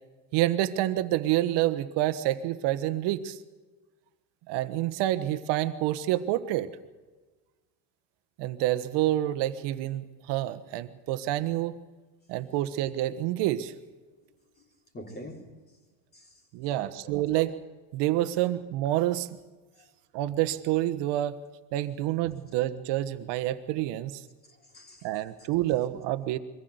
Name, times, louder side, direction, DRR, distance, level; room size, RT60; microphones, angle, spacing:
voice 1, 0.3-3.4 4.5-6.7 8.4-11.8 12.3-13.7 16.5-17.5 17.9-19.3 20.1-21.4 21.7-24.2 25.0-26.4, right 14 dB, 65° right, 1.3 m, -28 dB
voice 2, 14.9-15.5 16.1-16.4 16.7-17.5 19.8-19.9 24.5-25.1, equal, 20° left, 3.4 m, -46 dB
23.0 x 15.0 x 8.0 m
cardioid pair, 130°, 45 cm